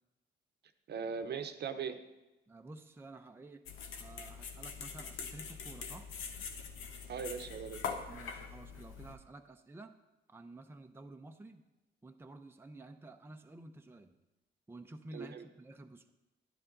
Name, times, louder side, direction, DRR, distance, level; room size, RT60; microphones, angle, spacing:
voice 1, 0.9-2.0 7.1-7.8 15.1-15.4, right 6 dB, 55° right, 8 dB, 0.9 m, -39 dB
voice 2, 2.5-3.7 4.0-6.1 8.1-9.9 10.3-11.6 12.0-14.2 14.7-16.1, right 2 dB, 10° right, 5 dB, 0.7 m, -51 dB
sound 1, 3.7-9.1, left 6 dB, 85° left, 1.1 m, -43 dB
11.0 x 9.7 x 3.9 m, 1.0 s
cardioid pair, 90°, 20 cm